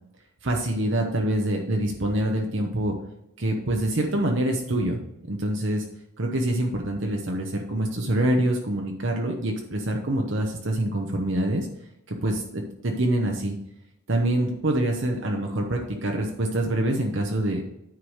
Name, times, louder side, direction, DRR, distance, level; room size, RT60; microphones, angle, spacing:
voice 1, 0.4-3.0 3.4-5.0 5.3-5.8 6.2-11.7 12.1-13.5 14.1-17.6, right 1 dB, 60° right, 1 dB, 1.0 m, -25 dB
9.6 x 4.8 x 4.9 m, 0.85 s
head